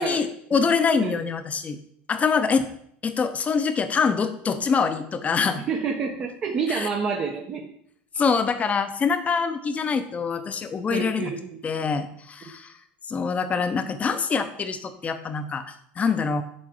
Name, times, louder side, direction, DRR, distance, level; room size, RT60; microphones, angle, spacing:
voice 1, 0.0-1.8 2.1-2.7 3.0-5.6 6.7-6.9 8.2-11.3 11.6-12.7 13.1-16.4, left 5 dB, 25° left, 9 dB, 0.9 m, -25 dB
voice 2, 5.5-7.7 10.9-11.9, right 5 dB, 40° right, 0 dB, 1.1 m, -29 dB
10.5 x 3.6 x 4.7 m, 0.68 s
supercardioid pair, 110°, 5 cm